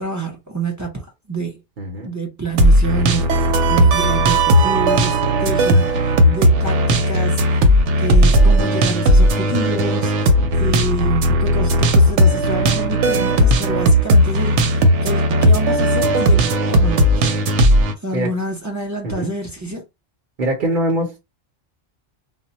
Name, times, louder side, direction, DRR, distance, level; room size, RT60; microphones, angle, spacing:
voice 1, 0.0-1.6 2.0-7.6 8.0-17.5 18.0-19.8, right 2 dB, 25° right, 0.4 m, -28 dB
voice 2, 1.8-2.1 18.1-18.3 19.0-19.3 20.4-21.2, right 1 dB, 50° right, 0.8 m, -22 dB
sound 1, 2.6-17.9, equal, 90° right, 0.9 m, -15 dB
2.1 x 2.1 x 3.8 m
omnidirectional pair, 1.2 m